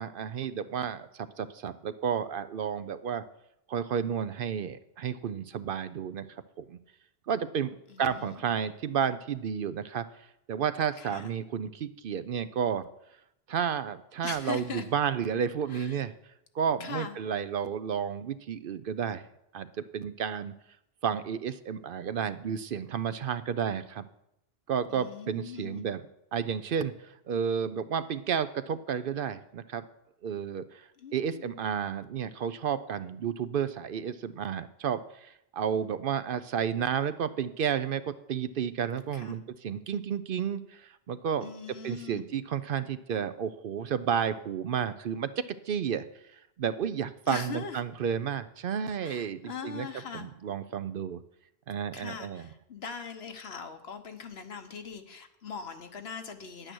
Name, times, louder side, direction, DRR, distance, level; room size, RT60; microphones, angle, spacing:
voice 1, 0.0-3.2 3.7-6.3 6.6-6.8 7.3-10.1 10.5-12.9 13.5-16.1 16.5-19.2 19.5-19.7 19.9-20.5 21.0-24.0 24.7-26.0 26.3-29.8 30.2-41.5 41.8-45.3 45.7-46.0 46.6-49.9 50.1-51.2 51.7-52.5, right 7 dB, 65° right, 13 dB, 0.7 m, -31 dB
voice 2, 7.9-8.5 11.0-11.3 14.2-14.9 15.7-16.0 16.8-17.2 24.8-25.9 31.0-31.6 39.1-39.4 41.4-42.3 47.3-47.8 49.0-50.3 51.9-56.7, left 6 dB, 75° left, 7 dB, 1.3 m, -41 dB
10.0 x 8.9 x 6.2 m, 0.82 s
omnidirectional pair, 1.1 m